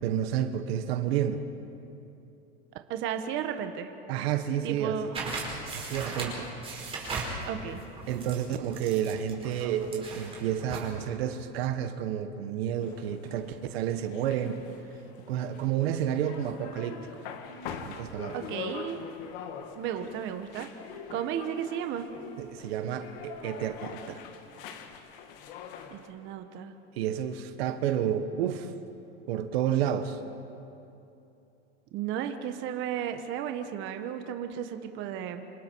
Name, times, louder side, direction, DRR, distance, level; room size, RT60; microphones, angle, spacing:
voice 1, 0.0-1.4 4.1-5.2 5.7-6.5 8.1-14.6 15.3-17.1 17.8-18.4 22.4-24.2 27.0-28.7 29.3-30.2, right 9 dB, 70° right, 9 dB, 1.5 m, -30 dB
voice 2, 2.9-3.9 4.6-5.2 7.4-7.8 18.3-19.1 19.8-20.7 21.1-22.1 25.9-26.7 31.9-35.5, right 9 dB, 35° right, 7 dB, 1.2 m, -34 dB
sound 1, 5.1-10.9, right 3 dB, 20° right, 5.3 m, -38 dB
sound 2, 12.8-26.1, left 7 dB, 55° left, 2.1 m, -44 dB
27.0 x 27.0 x 4.7 m, 2.8 s
supercardioid pair, 155°, 32 cm